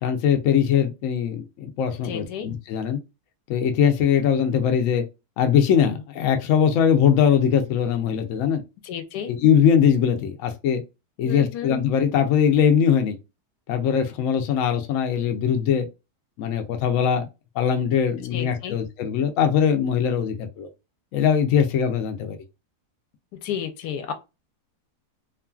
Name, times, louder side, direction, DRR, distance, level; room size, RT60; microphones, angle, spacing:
voice 1, 0.0-3.0 3.5-5.0 5.4-8.6 9.3-10.8 11.2-13.2 13.7-15.9 16.4-17.3 17.6-20.7 21.1-22.4, left 8 dB, 65° left, 0.8 m, -21 dB
voice 2, 2.0-2.5 8.8-9.3 11.2-11.7 18.3-18.8 23.4-24.1, left 8 dB, 85° left, 1.2 m, -32 dB
3.0 x 2.4 x 2.2 m
omnidirectional pair, 1.7 m